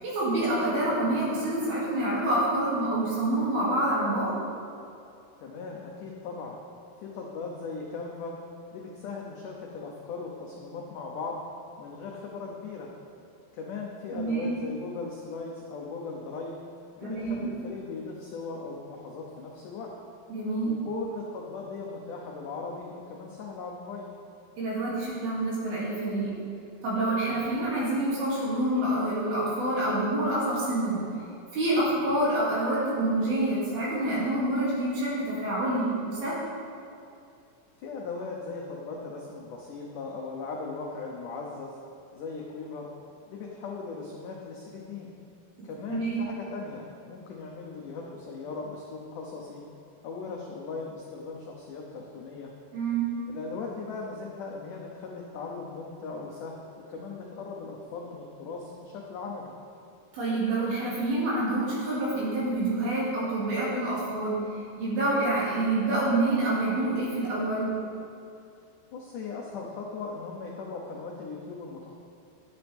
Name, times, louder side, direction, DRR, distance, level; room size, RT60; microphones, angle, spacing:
voice 1, 0.0-4.3 14.1-14.6 17.0-17.5 20.3-20.7 24.6-26.3 26.8-31.0 31.5-36.4 45.9-46.2 52.7-53.1 60.1-64.4 64.8-67.7, right 1 dB, 65° right, -7 dB, 4.5 m, -27 dB
voice 2, 5.4-6.6 7.0-8.4 8.7-11.4 11.8-12.9 13.5-16.6 17.0-19.9 20.6-24.1 27.3-27.5 31.8-32.0 37.8-41.8 42.1-42.9 43.3-45.1 45.6-49.6 50.0-52.5 53.3-59.5 65.1-65.2 68.9-71.9, left 4 dB, 85° left, -1 dB, 1.8 m, -38 dB
11.0 x 10.5 x 3.5 m, 2.6 s
omnidirectional pair, 4.8 m